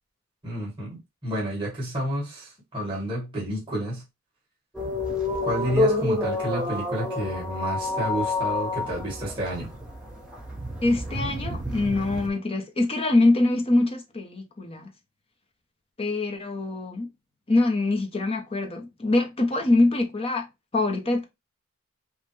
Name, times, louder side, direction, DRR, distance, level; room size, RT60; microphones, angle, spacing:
voice 1, 0.4-4.0 5.4-9.7, equal, 25° right, 2.0 m, -30 dB
sound 1, 4.7-12.3, left 2 dB, 5° right, 1.1 m, -28 dB
voice 2, 10.8-14.9 16.0-17.1 17.5-20.5 20.7-21.2, left 2 dB, 25° left, 1.0 m, -24 dB
5.4 x 2.5 x 3.4 m
head